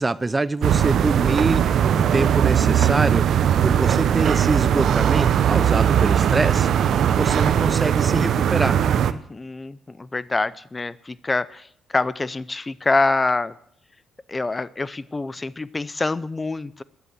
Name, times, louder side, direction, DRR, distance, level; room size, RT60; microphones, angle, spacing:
voice 1, 0.0-6.7 7.1-8.8, right 3 dB, 25° right, 18 dB, 0.5 m, -25 dB
sound 1, 0.6-9.1, right 9 dB, 65° right, 0.7 m, -19 dB
voice 2, 7.1-7.4 9.1-13.6 14.3-16.8, left 3 dB, 25° left, 18 dB, 0.6 m, -26 dB
12.5 x 10.0 x 6.3 m, 0.68 s
supercardioid pair, 60°, 0 cm